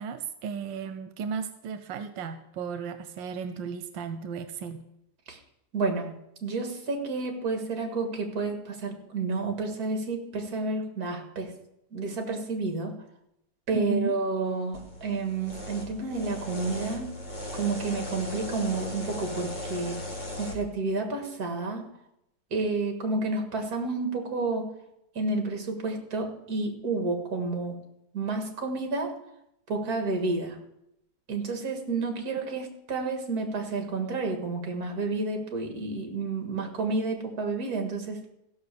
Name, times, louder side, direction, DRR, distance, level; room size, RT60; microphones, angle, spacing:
voice 1, 0.0-4.8 13.7-14.1, right 6 dB, 90° right, 10 dB, 1.4 m, -34 dB
voice 2, 5.7-6.1 6.4-11.5 11.9-13.0 13.7-17.1 17.5-20.0 20.4-21.9 22.5-24.7 25.2-27.8 28.1-29.1 29.7-30.6 31.3-38.3, right 3 dB, 55° right, 4 dB, 2.1 m, -30 dB
sound 1, 14.7-20.5, left 1 dB, 25° left, 1.8 m, -37 dB
15.0 x 5.8 x 6.7 m, 0.83 s
omnidirectional pair, 2.0 m